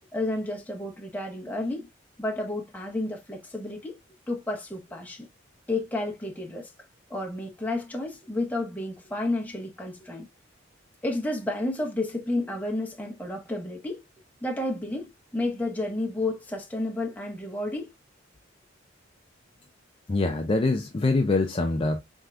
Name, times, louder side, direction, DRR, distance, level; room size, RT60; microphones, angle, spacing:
voice 1, 0.1-1.9 2.2-4.0 4.3-5.3 5.7-6.7 7.1-10.2 11.0-14.0 14.4-17.9, left 2 dB, 10° left, 1.0 m, -31 dB
voice 2, 20.1-22.0, left 3 dB, 30° left, 0.5 m, -24 dB
4.4 x 3.6 x 2.4 m
head